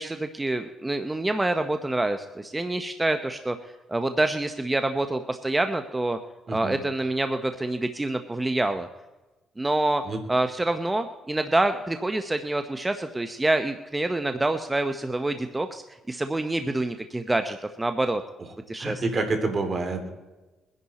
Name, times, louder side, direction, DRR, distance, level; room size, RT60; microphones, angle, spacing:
voice 1, 0.0-3.6 3.9-6.2 6.5-8.9 9.6-10.0 10.3-18.2 18.7-19.0, right 2 dB, 15° right, 8 dB, 0.8 m, -26 dB
voice 2, 6.5-6.8 10.0-10.2 18.4-18.5 18.8-20.1, right 3 dB, 40° right, 6 dB, 2.8 m, -28 dB
22.0 x 10.5 x 4.2 m, 1.1 s
cardioid pair, 90°, 0 cm